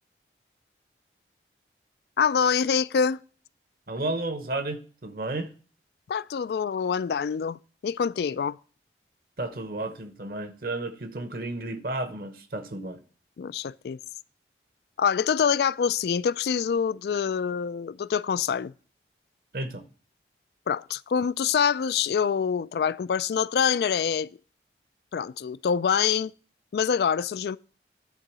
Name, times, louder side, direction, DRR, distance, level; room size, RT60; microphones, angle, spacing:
voice 1, 2.2-3.2 6.1-8.6 13.4-14.0 15.0-18.7 20.7-24.3 25.1-26.3 26.7-27.6, left 7 dB, 65° left, 0.3 m, -25 dB
voice 2, 3.9-5.5 9.4-13.0 19.5-19.8, right 2 dB, 55° right, 0.9 m, -32 dB
11.0 x 3.9 x 7.4 m
head